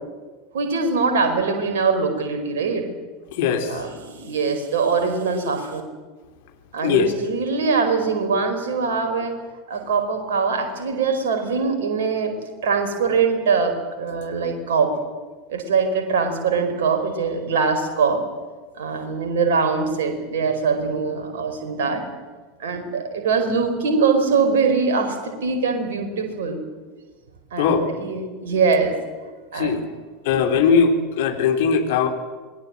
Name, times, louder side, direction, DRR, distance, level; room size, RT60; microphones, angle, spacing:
voice 1, 0.5-2.8 3.7-5.8 6.7-9.3 9.7-12.3 12.6-15.0 15.5-18.2 18.7-22.1 22.6-26.6 27.5-28.9 29.5-29.8, right 5 dB, 60° right, 5 dB, 4.7 m, -22 dB
voice 2, 3.3-3.8 6.8-7.1 27.6-27.9 29.5-29.9 30.2-32.1, left 6 dB, 55° left, 5 dB, 3.0 m, -20 dB
26.5 x 20.5 x 7.7 m, 1.4 s
figure-of-eight pair, 80°, 0 cm